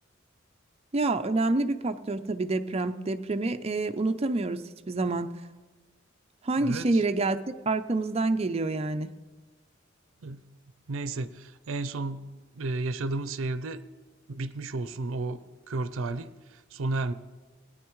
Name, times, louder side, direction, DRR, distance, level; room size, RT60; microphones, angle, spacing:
voice 1, 0.9-5.3 6.4-7.4 7.7-9.1, right 2 dB, 30° right, 9 dB, 0.5 m, -27 dB
voice 2, 6.6-7.0 10.2-10.4 10.9-12.2 12.5-13.8 14.3-15.4 15.7-17.1, right 2 dB, 80° right, 12 dB, 0.5 m, -32 dB
18.5 x 9.5 x 3.1 m, 1.3 s
head